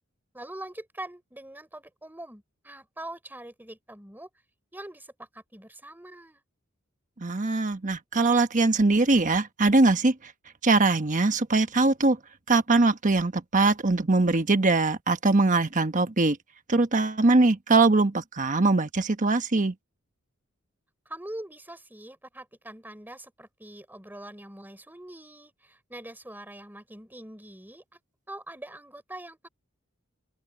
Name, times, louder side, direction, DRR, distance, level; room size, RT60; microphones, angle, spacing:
voice 1, 0.3-4.3 4.7-6.4 21.1-27.8 28.3-29.5, right 1 dB, 10° right, 3.8 m, -43 dB
voice 2, 7.2-10.1 10.6-12.2 12.5-16.4 16.7-19.7, right 3 dB, 40° right, 1.2 m, -22 dB
open air
head